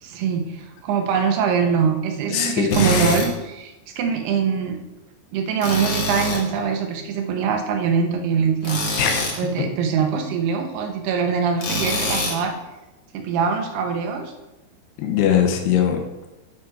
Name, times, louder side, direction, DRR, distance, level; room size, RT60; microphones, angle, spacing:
voice 1, 0.0-4.8 5.3-8.9 9.4-12.6 13.1-14.3, right 6 dB, 80° right, 4 dB, 3.0 m, -23 dB
voice 2, 2.3-3.2 9.0-9.2 15.0-16.0, left 8 dB, 85° left, 4 dB, 3.1 m, -21 dB
Tools, 2.7-3.3 5.6-6.5 8.6-9.4 11.6-12.4, equal, 60° left, 1.1 m, -24 dB
9.3 x 6.1 x 4.6 m, 1.0 s
omnidirectional pair, 4.7 m